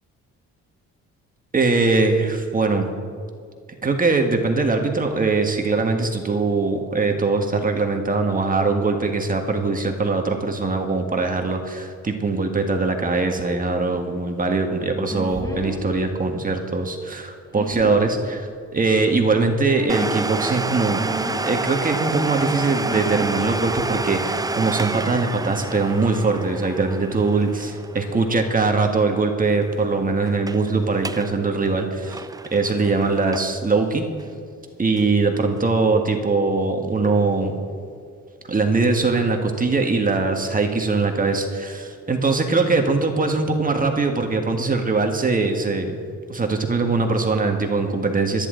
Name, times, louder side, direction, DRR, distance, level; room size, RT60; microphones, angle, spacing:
voice 1, 1.5-2.9 3.8-21.0 21.4-32.2 32.5-34.1 34.8-37.5 38.5-46.0 46.3-48.5, right 3 dB, 30° right, 4 dB, 1.6 m, -21 dB
sound 1, 15.1-15.8 17.5-18.0 19.7-20.3 20.9-21.4 22.9-23.3 23.6-23.9, equal, 10° left, 3.4 m, -31 dB
Domestic sounds home sounds, 19.9-29.3 29.6-29.7 30.3-30.6 30.9-31.3 31.7-33.7 34.2-34.3 35.0-35.1, right 3 dB, 15° right, 0.4 m, -29 dB
25.0 x 10.5 x 3.9 m, 2.2 s
cardioid pair, 90°, 30 cm